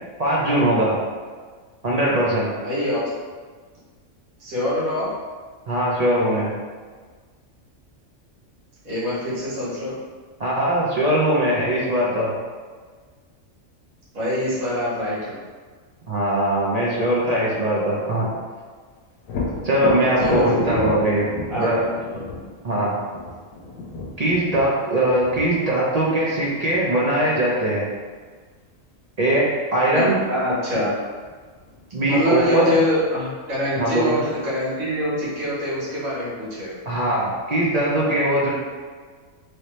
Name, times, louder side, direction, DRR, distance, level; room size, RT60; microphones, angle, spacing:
voice 1, 0.2-1.0 1.8-2.5 5.7-6.5 10.4-12.4 16.1-18.3 19.6-21.2 21.6-21.8 22.6-23.0 24.2-27.9 29.2-30.2 31.9-32.7 33.8-34.2 36.9-38.5, right 1 dB, 45° right, -6 dB, 0.5 m, -21 dB
voice 2, 2.6-3.0 4.4-5.1 8.8-10.0 14.1-15.4 20.2-21.0 21.5-22.2 29.9-30.9 32.1-36.7, left 1 dB, 85° right, -8 dB, 1.7 m, -24 dB
Thunder, 19.2-26.9 30.6-30.7 31.1-32.0, left 2 dB, 90° left, 1.0 m, -32 dB
3.2 x 2.7 x 3.1 m, 1.5 s
omnidirectional pair, 1.4 m